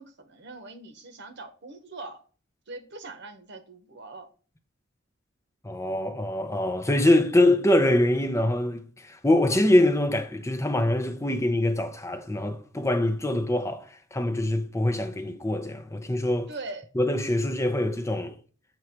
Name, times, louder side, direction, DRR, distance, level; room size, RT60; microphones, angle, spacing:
voice 1, 0.0-2.2 2.7-4.3 16.5-16.9, right 3 dB, 60° right, 1.1 m, -41 dB
voice 2, 5.6-16.5 17.0-18.3, left 1 dB, 15° left, 0.7 m, -24 dB
7.8 x 3.2 x 5.9 m
head